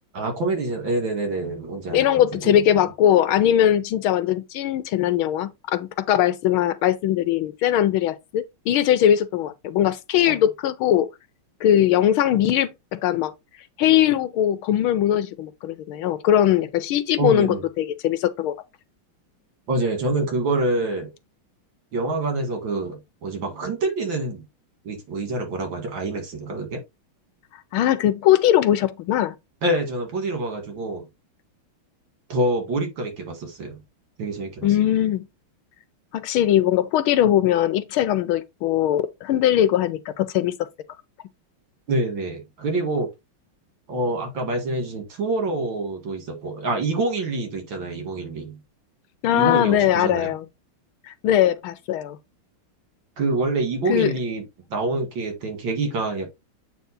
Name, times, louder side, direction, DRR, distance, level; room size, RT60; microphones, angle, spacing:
voice 1, 0.1-2.6 10.3-10.4 17.2-17.6 19.7-21.1 21.9-24.4 24.8-26.8 29.6-31.0 32.3-33.8 34.2-34.7 41.9-43.1 43.9-48.6 49.3-50.3 53.2-54.4 54.7-56.3, right 2 dB, 65° right, 2.7 m, -26 dB
voice 2, 1.9-11.1 11.6-13.3 13.8-18.5 27.7-29.3 34.6-35.3 36.1-40.5 49.2-50.4 51.1-52.2 53.9-54.1, left 11 dB, 85° left, 1.5 m, -20 dB
8.4 x 3.5 x 4.0 m
omnidirectional pair, 2.3 m